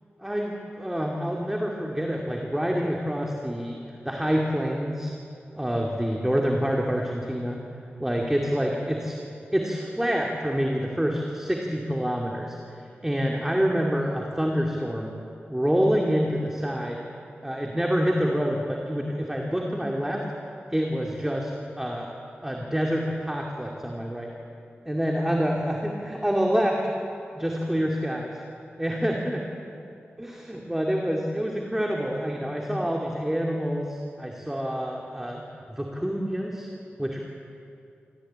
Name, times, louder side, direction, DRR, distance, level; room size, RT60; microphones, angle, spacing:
voice 1, 0.2-5.1 5.6-7.6 8.0-9.2 9.5-12.6 13.0-15.1 15.5-17.0 17.4-20.2 20.7-21.5 21.8-22.1 22.4-24.3 24.9-26.8 27.3-28.3 28.8-29.4 30.2-35.4 35.7-36.7 37.0-37.2, equal, 10° right, 0 dB, 2.4 m, -27 dB
25.5 x 15.0 x 8.8 m, 2.7 s
cardioid pair, 55°, 4 cm